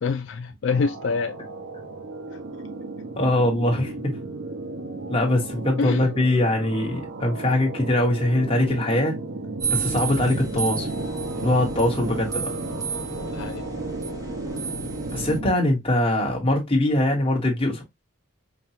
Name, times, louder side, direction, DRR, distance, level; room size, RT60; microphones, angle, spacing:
voice 1, 0.0-1.4 5.8-6.1 13.3-13.7, left 4 dB, 60° left, 0.3 m, -26 dB
sound 1, 0.7-15.5, right 2 dB, 75° right, 0.7 m, -34 dB
voice 2, 3.2-4.1 5.1-9.2 9.7-10.9 11.4-12.5 15.1-17.8, left 1 dB, 25° left, 1.3 m, -22 dB
sound 2, 9.6-15.4, right 5 dB, 15° right, 0.8 m, -32 dB
5.1 x 2.3 x 2.8 m
head